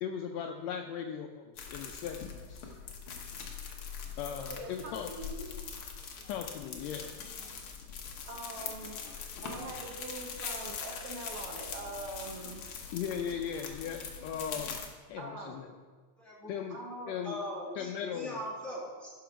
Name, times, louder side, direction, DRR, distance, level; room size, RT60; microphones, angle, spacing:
voice 1, 0.0-2.8 4.2-5.1 6.3-7.1 12.9-14.8 15.1-15.7 16.5-16.8 17.1-17.4 17.7-18.4, left 8 dB, 85° left, 4 dB, 1.5 m, -38 dB
sound 1, 1.6-14.9, left 6 dB, 60° left, 1.5 m, -42 dB
voice 2, 4.3-5.4 8.3-9.0 9.4-12.7 15.2-15.6 16.7-17.2, right 2 dB, 70° right, 1 dB, 1.4 m, -43 dB
voice 3, 16.2-16.6 17.2-19.1, equal, 25° left, -6 dB, 2.1 m, -40 dB
12.0 x 5.6 x 5.0 m, 1.5 s
omnidirectional pair, 3.6 m